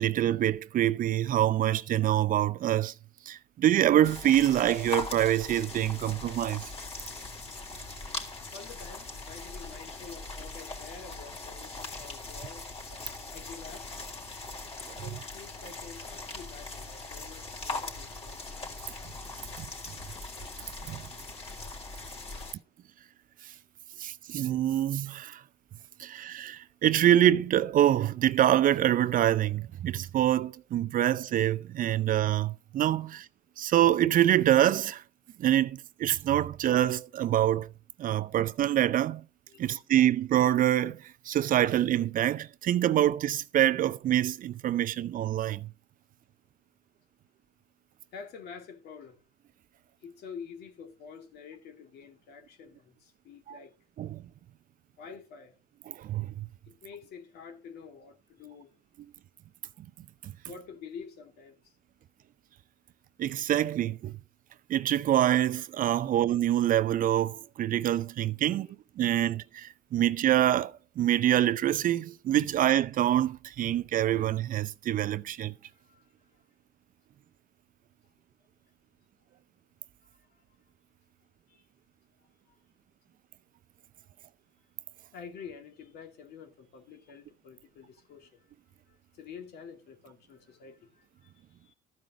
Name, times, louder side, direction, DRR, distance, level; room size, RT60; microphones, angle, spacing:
voice 1, 0.0-2.9 3.3-6.7 19.6-19.7 20.9-21.1 24.0-25.4 26.0-33.3 33.6-35.0 35.4-37.7 38.0-39.2 39.6-45.7 53.5-53.6 54.0-54.2 55.9-56.5 60.2-60.3 63.2-64.1 64.7-68.7 69.0-75.5, right 12 dB, 55° right, 0.6 m, -25 dB
sound 1, 4.0-22.5, left 3 dB, 35° left, 3.6 m, -41 dB
voice 2, 8.5-12.7 13.3-14.2 15.0-18.4 22.3-22.7 33.1-33.2 39.5-39.8 48.1-49.2 50.0-53.7 55.0-55.6 56.7-58.7 60.5-61.8 66.0-66.2 68.5-68.7 75.7-76.4 80.0-80.4 81.5-81.7 82.2-82.6 85.1-88.5 88.8-91.7, left 6 dB, 70° left, 2.4 m, -48 dB
13.5 x 5.2 x 6.1 m
cardioid pair, 110°, 17 cm